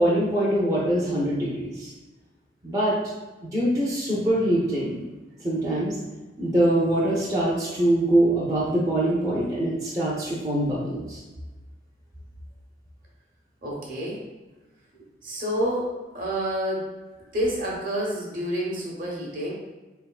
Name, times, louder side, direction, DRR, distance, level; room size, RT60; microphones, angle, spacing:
voice 1, 0.0-1.9 2.6-2.9 3.5-5.0 5.4-6.0 6.4-11.2, right 1 dB, 20° right, -7 dB, 0.6 m, -23 dB
voice 2, 13.6-14.2 15.2-16.9 17.3-19.5, equal, 50° right, -3 dB, 1.0 m, -28 dB
4.0 x 3.4 x 2.3 m, 1.2 s
head